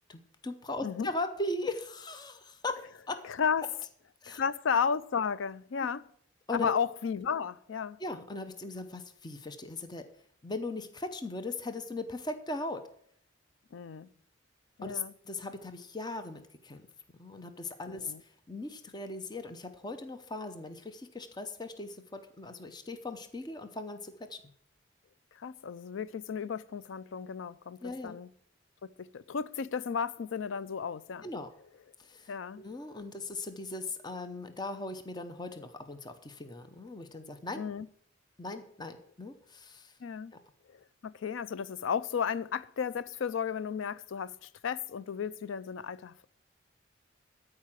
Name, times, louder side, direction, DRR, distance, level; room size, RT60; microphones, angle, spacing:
voice 1, 0.1-3.3 3.6-3.7 4.2-4.4 6.5-6.7 8.0-10.1 10.4-12.8 14.8-16.8 17.2-24.4 27.8-28.2 31.2-31.5 32.0-37.6 38.4-39.9 40.3-40.4, left 2 dB, 20° left, 0.7 m, -39 dB
voice 2, 3.2-3.7 4.3-6.0 6.5-8.0 13.7-14.1 14.8-15.1 17.9-18.2 25.3-28.3 28.8-31.3 32.3-32.6 37.6-37.9 40.0-40.3 40.7-46.3, left 6 dB, 85° left, 0.4 m, -34 dB
13.0 x 4.9 x 7.4 m
head